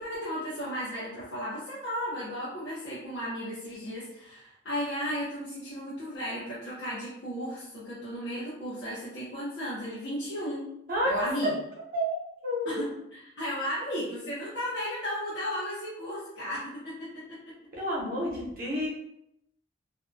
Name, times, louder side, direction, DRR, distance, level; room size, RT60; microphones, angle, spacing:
voice 1, 0.0-10.6 11.0-11.5 12.6-17.4, equal, 70° left, -9 dB, 0.7 m, -34 dB
voice 2, 12.4-12.8 17.7-18.9, equal, 50° right, -5 dB, 0.8 m, -30 dB
2.6 x 2.2 x 2.5 m, 0.79 s
head